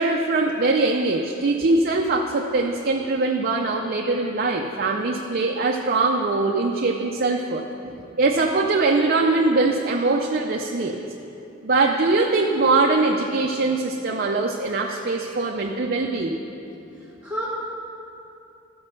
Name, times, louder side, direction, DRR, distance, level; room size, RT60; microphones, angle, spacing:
voice 1, 0.0-7.7 8.2-11.0 11.6-16.4, right 3 dB, 50° right, 1 dB, 0.6 m, -22 dB
voice 2, 16.9-17.5, equal, 5° right, -8 dB, 1.5 m, -33 dB
14.0 x 5.3 x 6.6 m, 2.8 s
head